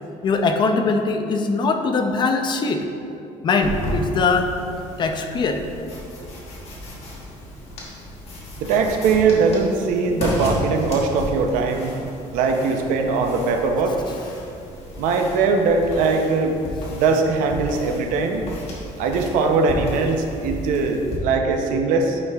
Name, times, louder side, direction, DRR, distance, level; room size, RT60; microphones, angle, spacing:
voice 1, 0.2-2.9 3.4-4.5 5.0-5.6, left 4 dB, 35° left, 5 dB, 0.5 m, -21 dB
sound 1, 3.6-21.2, equal, 50° left, 1.4 m, -33 dB
voice 2, 8.6-11.9 12.3-14.0 15.0-16.6 16.9-18.5 19.0-22.2, right 4 dB, 85° right, 4 dB, 0.6 m, -20 dB
8.9 x 5.3 x 2.4 m, 2.7 s
cardioid pair, 145°, 13 cm